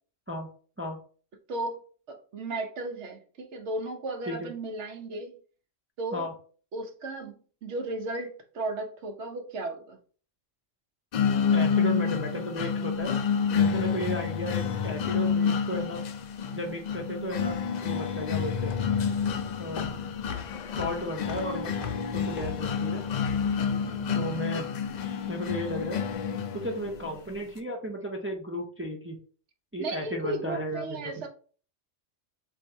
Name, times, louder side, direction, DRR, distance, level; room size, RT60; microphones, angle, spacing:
voice 1, 1.5-1.8 2.1-5.3 6.0-6.3 6.7-10.0 23.8-24.2 29.8-31.3, right 2 dB, 65° right, 5 dB, 1.1 m, -35 dB
sound 1, 11.1-27.1, left 6 dB, 85° left, 0.3 m, -29 dB
voice 2, 11.5-13.1 13.5-16.0 16.5-18.7 19.6-19.9 20.8-21.8 22.1-23.0 24.1-24.7 25.3-26.0 26.5-29.2 29.7-31.2, equal, 15° right, 1 dB, 0.4 m, -34 dB
sound 2, 17.5-23.9, left 7 dB, 50° left, 0.7 m, -42 dB
3.7 x 2.8 x 4.4 m, 0.41 s
omnidirectional pair, 1.3 m